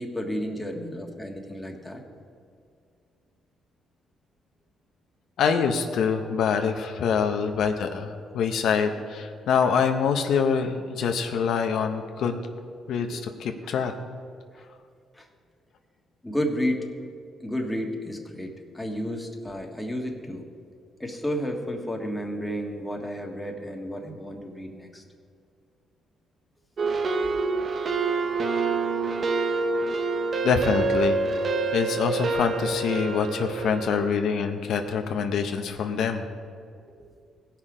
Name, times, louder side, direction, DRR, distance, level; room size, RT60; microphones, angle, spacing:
voice 1, 0.0-2.0 14.5-14.7 15.1-15.3 16.2-16.8 17.4-20.5 21.0-25.0 37.0-37.1, equal, 5° left, 1 dB, 1.5 m, -32 dB
voice 2, 5.4-12.4 12.9-13.9 30.4-31.2 31.7-36.2, left 6 dB, 75° left, 5 dB, 0.7 m, -25 dB
sound 1, 26.8-34.1, right 3 dB, 45° right, 0.7 m, -26 dB
17.0 x 5.8 x 4.9 m, 2.3 s
cardioid pair, 90°, 0 cm